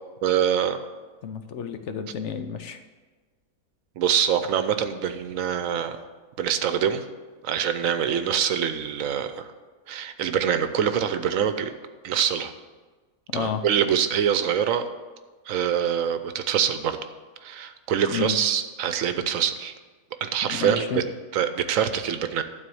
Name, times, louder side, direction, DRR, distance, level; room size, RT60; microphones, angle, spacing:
voice 1, 0.2-0.8 4.0-6.0 6.4-7.1 7.4-9.5 9.9-11.7 12.0-12.5 13.3-14.8 15.5-17.0 17.4-19.7 20.2-21.0 21.3-22.4, right 8 dB, 75° right, 10 dB, 1.1 m, -24 dB
voice 2, 1.2-2.8 13.3-13.6 18.1-18.4 20.5-21.0, left 7 dB, 65° left, 8 dB, 0.9 m, -30 dB
12.0 x 4.1 x 7.7 m, 1.3 s
omnidirectional pair, 1.4 m